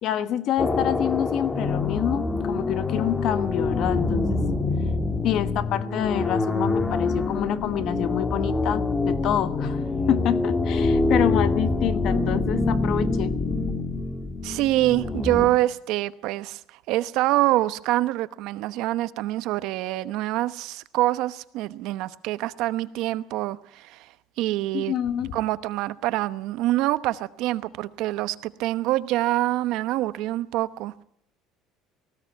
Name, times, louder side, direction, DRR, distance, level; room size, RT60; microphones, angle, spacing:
voice 1, 0.0-4.4 5.2-9.8 10.1-13.3 24.7-25.4, left 11 dB, 50° left, 1.3 m, -27 dB
sound 1, 0.6-15.5, left 3 dB, 15° left, 1.7 m, -25 dB
voice 2, 14.4-16.6 16.9-24.1 24.4-25.0 25.3-31.0, right 16 dB, 65° right, 0.9 m, -25 dB
18.5 x 16.0 x 9.2 m
cardioid pair, 150°, 0 cm